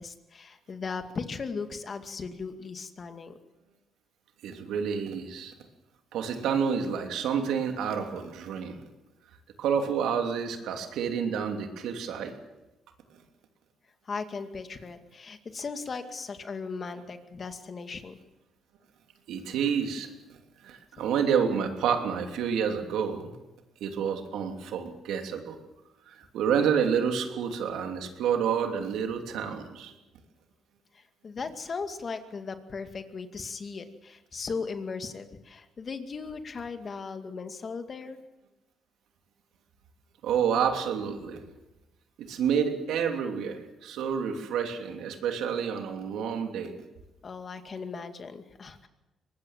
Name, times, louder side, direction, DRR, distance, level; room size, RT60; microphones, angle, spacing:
voice 1, 0.0-3.4 14.0-18.2 30.9-38.2 47.2-48.9, left 4 dB, 40° left, 7 dB, 2.2 m, -37 dB
voice 2, 4.4-5.5 6.1-8.8 9.6-12.3 19.3-20.1 20.6-23.3 23.8-25.6 26.1-29.9 40.2-41.4 42.2-46.7, right 7 dB, 85° right, 4 dB, 3.0 m, -29 dB
23.0 x 20.0 x 7.5 m, 1.0 s
cardioid pair, 90°, 0 cm